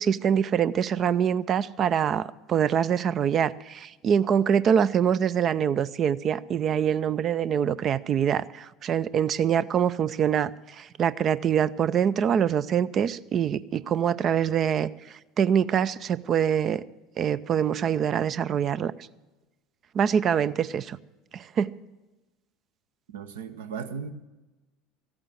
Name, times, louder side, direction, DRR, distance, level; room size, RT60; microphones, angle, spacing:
voice 1, 0.0-14.9 15.4-16.8 17.2-18.9 19.9-21.0 21.3-21.7, right 8 dB, 35° right, 17 dB, 0.4 m, -24 dB
voice 2, 23.1-24.1, right 6 dB, 65° right, 10 dB, 0.9 m, -36 dB
14.0 x 8.8 x 7.8 m, 1.1 s
figure-of-eight pair, 70°, 0 cm